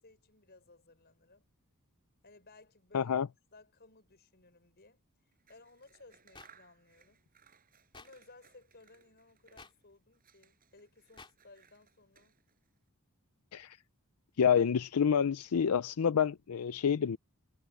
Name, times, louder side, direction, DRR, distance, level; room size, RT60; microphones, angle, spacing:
voice 1, 0.0-1.5 2.2-3.1 3.5-5.0 5.5-7.2 7.9-12.4, left 3 dB, 45° left, 6.0 m, -59 dB
voice 2, 2.9-3.3 13.5-13.8 14.4-17.2, left 7 dB, 80° left, 0.5 m, -28 dB
Scissors, 5.3-9.8 10.1-12.7, right 7 dB, 40° right, 7.8 m, -65 dB
sound 1, 6.3-6.5 7.9-8.1 9.6-9.7 11.2-11.3, left 4 dB, 20° left, 3.1 m, -51 dB
head